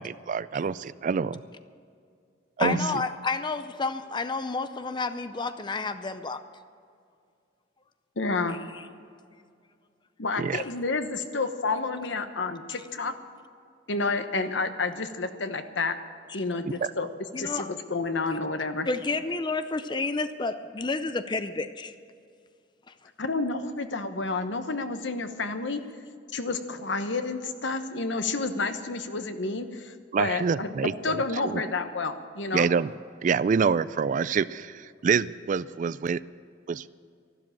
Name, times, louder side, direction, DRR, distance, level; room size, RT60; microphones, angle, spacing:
voice 1, 0.0-1.4 2.6-2.8 10.4-10.6 16.8-16.9 30.1-31.6 32.5-32.9 33.2-36.2 36.7-36.9, right 6 dB, 40° right, 17 dB, 0.3 m, -26 dB
voice 2, 2.6-6.4 8.7-8.8 12.7-12.8 16.3-16.6 17.3-17.7 18.9-21.9, left 3 dB, 25° left, 10 dB, 0.5 m, -30 dB
voice 3, 8.2-8.6 10.2-13.1 13.9-16.0 16.3-17.1 17.4-18.9 23.2-25.8 26.3-30.7 31.0-32.7, left 3 dB, 65° left, 8 dB, 1.1 m, -30 dB
13.5 x 12.0 x 7.4 m, 2.3 s
head